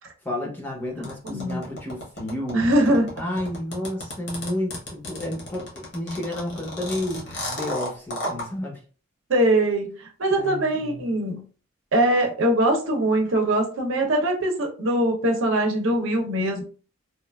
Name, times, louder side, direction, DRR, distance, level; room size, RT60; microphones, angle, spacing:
voice 1, 0.2-2.7 3.2-8.8 10.3-11.0, left 1 dB, 10° left, 0.6 m, -31 dB
voice 2, 0.9-1.6 2.5-3.1 9.3-11.4 11.9-16.6, right 1 dB, 70° right, 0.7 m, -22 dB
sound 1, 1.0-8.5, left 1 dB, 50° left, 0.9 m, -33 dB
2.9 x 2.3 x 2.2 m
head